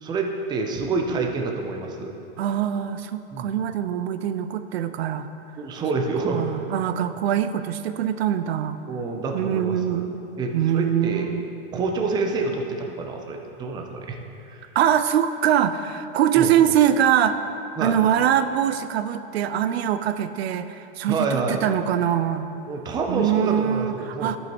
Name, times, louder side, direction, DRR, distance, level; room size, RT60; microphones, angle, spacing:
voice 1, 0.0-2.1 3.3-3.5 5.6-6.5 8.9-10.1 10.4-11.3 11.7-14.2 14.5-14.8 16.3-16.5 17.8-18.0 21.1-21.6 22.7-24.3, right 3 dB, 15° right, 2 dB, 0.5 m, -27 dB
voice 2, 2.4-5.3 6.3-8.8 9.3-10.3 10.5-11.5 14.8-17.4 17.8-22.5 23.1-24.4, right 10 dB, 85° right, 11 dB, 0.5 m, -23 dB
13.0 x 5.4 x 3.0 m, 2.9 s
supercardioid pair, 145°, 30 cm